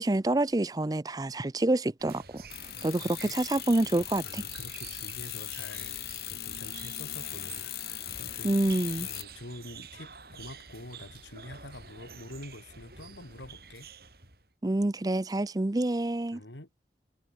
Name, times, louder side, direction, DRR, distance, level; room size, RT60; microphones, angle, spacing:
voice 1, 0.0-2.4 2.8-4.4 8.4-9.1 14.6-16.4, right 2 dB, 20° right, 0.5 m, -27 dB
sound 1, 2.0-14.5, right 5 dB, 55° right, 7.3 m, -49 dB
sound 2, 2.5-9.2, left 13 dB, 60° left, 1.9 m, -39 dB
voice 2, 2.7-3.4 4.2-8.6 9.0-13.9 16.3-16.7, left 1 dB, 90° left, 3.6 m, -46 dB
head